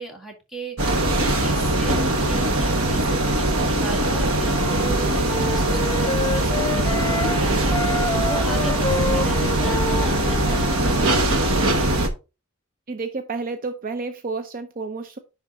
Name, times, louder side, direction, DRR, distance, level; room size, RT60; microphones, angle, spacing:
voice 1, 0.0-11.4, right 3 dB, ahead, 0 dB, 2.0 m, -36 dB
sound 1, 0.8-12.1, right 1 dB, 65° right, 1.3 m, -21 dB
Wind instrument woodwind instrument, 4.5-7.4 7.7-10.9, left 2 dB, 15° left, 0.3 m, -29 dB
voice 2, 12.9-15.2, right 4 dB, 40° right, 9 dB, 0.6 m, -30 dB
10.0 x 3.9 x 3.8 m, 0.29 s
head